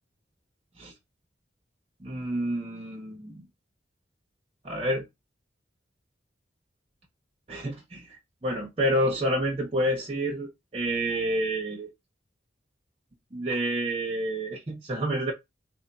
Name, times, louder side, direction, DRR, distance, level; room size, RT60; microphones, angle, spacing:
voice 1, 2.0-3.4 4.6-5.0 7.5-8.1 8.4-11.9 13.3-15.3, right 1 dB, 35° right, 0.7 m, -28 dB
3.4 x 2.1 x 4.0 m
head